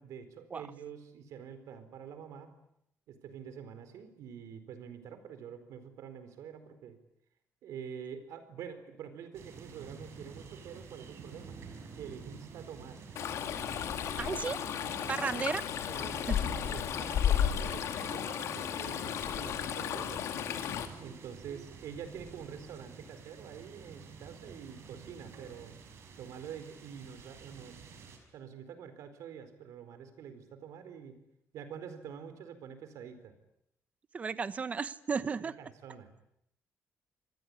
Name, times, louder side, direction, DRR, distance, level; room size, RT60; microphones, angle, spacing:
voice 1, 0.0-2.5 3.1-7.0 7.6-11.6 12.0-13.1 15.9-20.3 21.0-25.8 26.2-27.9 28.3-31.2 31.5-33.3 35.4-36.1, right 7 dB, 80° right, 11 dB, 4.4 m, -46 dB
sound 1, 9.3-28.2, right 5 dB, 55° right, 5.9 m, -50 dB
Stream, 13.2-20.9, left 9 dB, 70° left, 2.8 m, -33 dB
voice 2, 14.2-14.6 15.1-15.7 15.9-16.4 21.5-21.6 34.1-35.6, right 5 dB, 25° right, 15 dB, 1.0 m, -34 dB
27.0 x 20.5 x 9.8 m, 0.77 s
cardioid pair, 170°, 5 cm